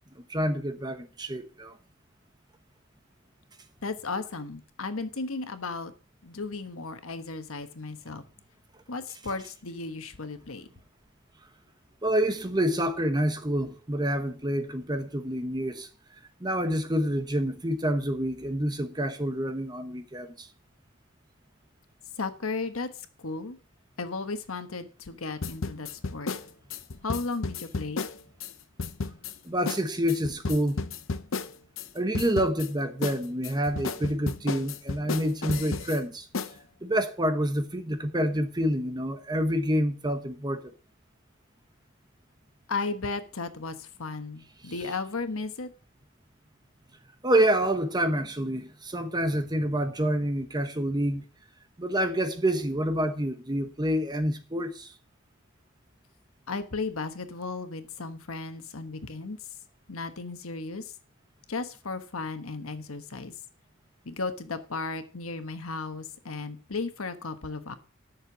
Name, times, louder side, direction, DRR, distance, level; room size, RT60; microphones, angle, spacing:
voice 1, 0.3-1.7 12.0-15.9 16.4-20.5 29.5-30.8 31.9-36.2 36.8-40.6 47.2-51.2 51.8-54.9, right 1 dB, 20° right, 1.1 m, -27 dB
voice 2, 3.8-5.9 6.2-8.2 8.9-10.7 22.2-22.9 23.2-23.6 24.0-26.3 27.0-28.1 42.7-45.7 56.5-59.4 59.9-60.8 61.5-63.3 64.0-67.7, left 3 dB, 90° left, 1.3 m, -35 dB
sound 1, 25.4-28.5 28.8-29.3 29.7-29.8 30.1-31.9 32.1-32.7 33.0-36.0 36.3-36.5, left 4 dB, 65° left, 0.8 m, -33 dB
11.5 x 6.7 x 6.1 m
head